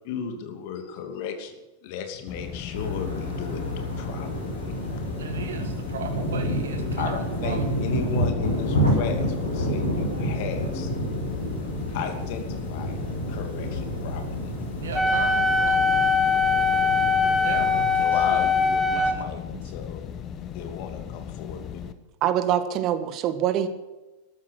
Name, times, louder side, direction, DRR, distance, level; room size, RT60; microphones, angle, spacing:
voice 1, 0.0-1.5 1.8-4.5 7.0-10.9 11.9-13.0 13.3-14.5 18.0-20.0 20.5-21.8, left 7 dB, 50° left, 5 dB, 2.6 m, -35 dB
sound 1, 2.3-21.9, left 8 dB, 30° left, 1.1 m, -37 dB
sound 2, 2.7-18.0, equal, 80° left, 6.6 m, -29 dB
voice 2, 5.2-7.7 14.8-15.9 17.4-18.5 18.9-19.2 19.5-19.6, right 6 dB, 60° right, 6 dB, 1.7 m, -36 dB
Wind instrument woodwind instrument, 14.9-19.2, left 4 dB, ahead, 1.3 m, -22 dB
voice 3, 22.2-23.7, right 10 dB, 35° right, 11 dB, 1.5 m, -24 dB
13.5 x 13.0 x 6.6 m, 1.1 s
figure-of-eight pair, 90°, 0 cm